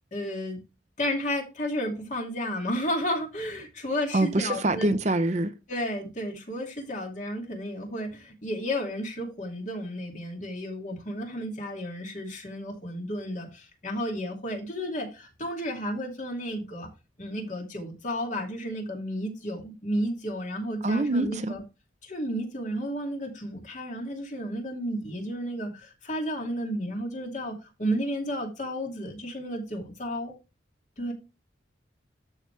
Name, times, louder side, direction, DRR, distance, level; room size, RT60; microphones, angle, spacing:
voice 1, 0.1-0.6 1.0-5.0 5.7-16.9 17.2-21.6 22.0-30.3 31.0-31.1, equal, 40° left, 2.6 m, -32 dB
voice 2, 4.1-5.5 20.8-21.5, right 2 dB, 40° right, 0.7 m, -25 dB
13.0 x 5.0 x 3.3 m
head